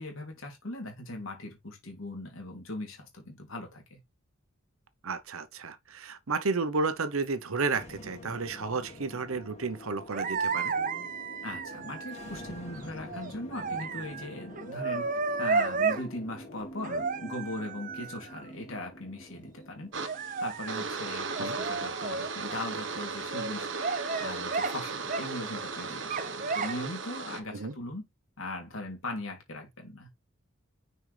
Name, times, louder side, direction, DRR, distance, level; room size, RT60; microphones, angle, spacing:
voice 1, 0.0-4.0 11.4-15.1 15.4-19.9 20.4-23.7 24.2-28.1 28.4-30.1, left 1 dB, 70° left, 2.9 m, -39 dB
voice 2, 5.0-10.7 21.4-21.5 27.5-27.7, right 4 dB, 80° right, 0.9 m, -32 dB
sound 1, 7.7-21.7, left 1 dB, 30° left, 1.7 m, -47 dB
sound 2, 10.1-16.1 16.8-18.4 20.0-22.6 22.9-23.5 23.8-24.8 25.1-25.8 26.1-26.9 27.3-27.8, right 4 dB, 40° right, 0.7 m, -33 dB
sound 3, 19.9-27.4, right 4 dB, 55° right, 1.2 m, -36 dB
6.3 x 5.4 x 3.3 m
head